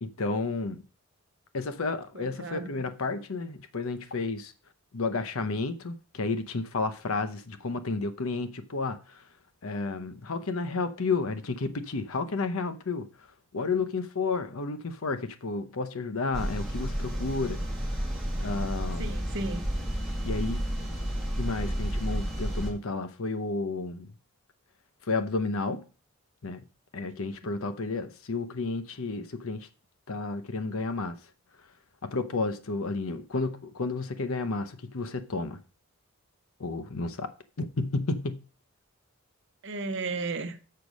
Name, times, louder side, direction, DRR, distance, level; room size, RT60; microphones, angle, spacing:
voice 1, 0.0-0.8 1.5-4.5 4.9-9.2 9.6-13.1 13.5-17.6 18.4-19.1 20.2-20.6 21.4-24.1 25.1-25.8 26.4-26.7 26.9-29.7 30.1-31.2 32.0-35.6 36.6-37.3 37.6-38.4, left 3 dB, 70° left, 0.8 m, -31 dB
voice 2, 2.1-2.7 19.0-19.6 39.6-40.6, right 3 dB, 55° right, 0.9 m, -34 dB
sound 1, 16.3-22.7, equal, ahead, 1.7 m, -31 dB
6.7 x 5.3 x 6.2 m
head